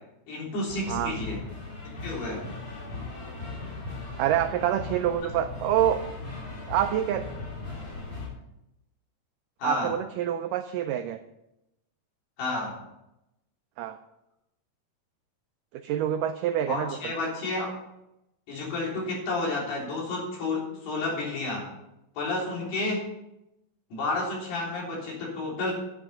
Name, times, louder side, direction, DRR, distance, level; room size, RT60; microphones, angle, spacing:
voice 1, 0.3-1.4 2.0-2.4 9.6-9.9 12.4-12.7 16.7-17.7 18.5-21.6 22.2-23.0 23.9-25.7, left 2 dB, 90° left, -3 dB, 5.6 m, -30 dB
sound 1, 0.7-8.3, left 3 dB, 35° left, 4.8 m, -38 dB
voice 2, 4.2-6.0 6.7-7.3 9.6-11.2 13.8-14.0 15.7-17.0, right 11 dB, 90° right, 8 dB, 1.8 m, -26 dB
10.0 x 10.0 x 5.5 m, 0.88 s
omnidirectional pair, 4.4 m